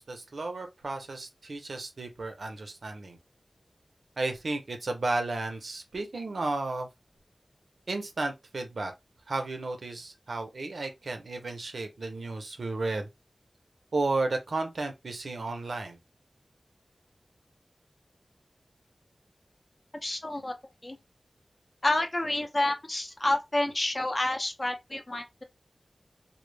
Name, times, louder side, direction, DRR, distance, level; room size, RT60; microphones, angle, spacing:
voice 1, 0.0-3.2 4.2-6.9 7.9-8.9 9.3-13.1 13.9-16.0, right 2 dB, 80° right, 0.5 m, -33 dB
voice 2, 20.0-20.5 20.8-21.0 21.8-25.4, left 1 dB, 40° left, 0.5 m, -29 dB
2.1 x 2.0 x 3.1 m
wide cardioid pair, 75°, 0 cm